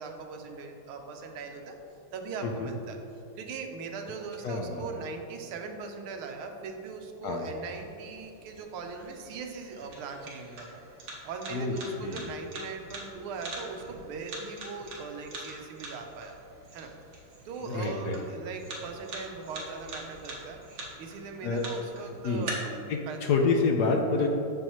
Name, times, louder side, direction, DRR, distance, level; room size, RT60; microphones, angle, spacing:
voice 1, 0.0-1.8 2.1-3.0 3.4-10.8 11.2-16.4 16.7-16.9 17.4-20.6 21.0-23.2 24.2-24.3, right 4 dB, 80° right, 3 dB, 1.6 m, -40 dB
voice 2, 4.4-4.9 7.2-7.5 11.5-12.3 17.7-18.2 21.4-21.6 22.2-22.5 22.9-24.3, left 4 dB, 70° left, 2 dB, 1.0 m, -28 dB
sound 1, 7.5-22.5, right 2 dB, 55° right, 1.9 m, -45 dB
8.6 x 7.2 x 3.0 m, 2.9 s
omnidirectional pair, 2.4 m